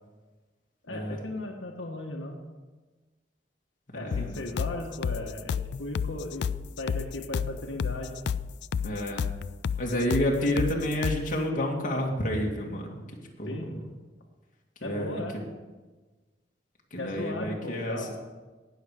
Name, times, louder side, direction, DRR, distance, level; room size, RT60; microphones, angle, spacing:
voice 1, 0.8-2.4 3.9-6.4 6.8-8.2 13.4-13.7 14.8-15.4 17.0-18.1, left 1 dB, 85° left, 2 dB, 1.3 m, -36 dB
voice 2, 4.0-4.4 8.8-9.2 9.8-12.9 13.4-13.5 14.8-15.4 16.9-18.1, equal, 45° left, -1 dB, 2.2 m, -29 dB
sound 1, 4.1-11.3, left 7 dB, 65° left, 0.3 m, -31 dB
18.0 x 7.2 x 5.0 m, 1.3 s
head